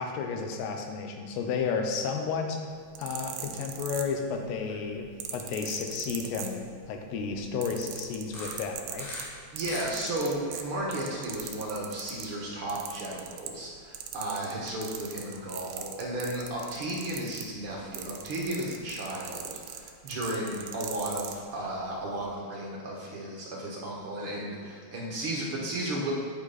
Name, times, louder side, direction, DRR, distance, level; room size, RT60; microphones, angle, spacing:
voice 1, 0.0-2.6 3.0-9.1, left 5 dB, 80° left, 4 dB, 3.0 m, -32 dB
sound 1, 2.8-4.5 5.2-6.9 7.3-12.3 12.7-13.7 13.9-21.4 22.1-22.3, right 9 dB, 75° right, 2.4 m, -40 dB
sound 2, 4.5-4.8 5.2-5.3 6.0-6.1 8.2-9.2 9.5-10.3, left 1 dB, 65° left, 4.1 m, -41 dB
voice 2, 9.5-26.1, right 1 dB, 55° right, -4 dB, 1.5 m, -34 dB
9.8 x 9.2 x 4.3 m, 2.2 s
omnidirectional pair, 4.7 m